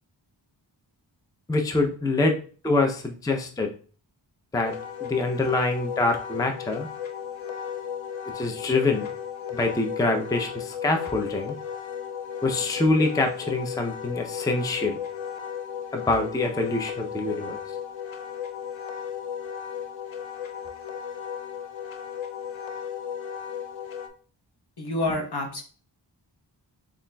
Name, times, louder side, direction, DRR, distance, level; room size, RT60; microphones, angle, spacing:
voice 1, 1.5-3.7 4.5-4.7 5.0-6.9 8.3-9.1 9.5-11.6 12.4-15.0 15.9-17.6, left 2 dB, 10° left, 3 dB, 0.5 m, -25 dB
Wind instrument woodwind instrument, 4.6-24.1, left 8 dB, 85° left, 0.6 m, -35 dB
voice 2, 24.8-25.6, left 2 dB, 55° left, 2 dB, 1.0 m, -28 dB
6.9 x 2.5 x 2.2 m, 0.41 s
wide cardioid pair, 55°, 45 cm